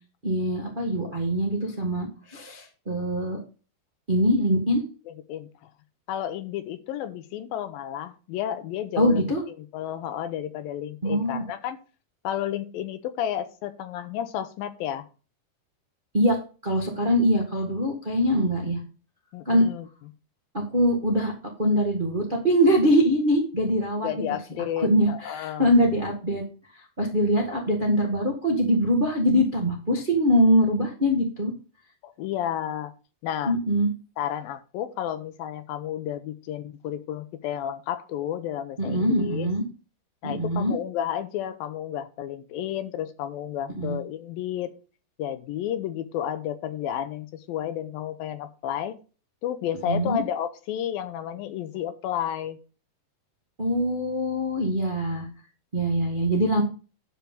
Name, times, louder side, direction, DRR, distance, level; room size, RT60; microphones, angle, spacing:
voice 1, 0.2-3.4 4.1-4.8 9.0-9.4 11.0-11.4 16.1-16.4 16.6-18.8 19.4-19.7 20.5-21.3 21.6-24.1 24.8-26.4 27.0-31.5 33.5-33.9 38.8-39.6 40.2-40.7 43.8-44.0 49.9-50.2 53.6-55.3 55.7-56.6, equal, 55° right, 0 dB, 0.5 m, -23 dB
voice 2, 5.1-5.7 6.1-11.8 12.2-15.1 19.3-19.9 24.0-25.7 32.0-32.9 33.2-33.6 34.2-39.5 40.2-44.7 45.2-49.0 49.4-52.6, left 10 dB, 80° left, 10 dB, 2.4 m, -32 dB
11.5 x 4.6 x 5.4 m, 0.35 s
omnidirectional pair, 4.5 m